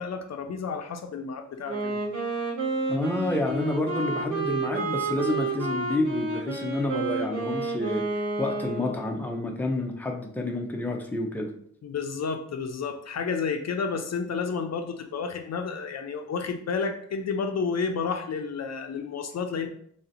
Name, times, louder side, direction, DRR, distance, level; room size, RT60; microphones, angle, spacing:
voice 1, 0.0-2.0 11.8-19.7, left 5 dB, 60° left, 6 dB, 0.5 m, -31 dB
Wind instrument woodwind instrument, 1.7-9.3, right 3 dB, 85° right, 1.3 m, -30 dB
voice 2, 2.9-11.5, left 2 dB, 5° left, 1 dB, 0.6 m, -29 dB
3.2 x 2.7 x 4.0 m, 0.64 s
wide cardioid pair, 105°, 30 cm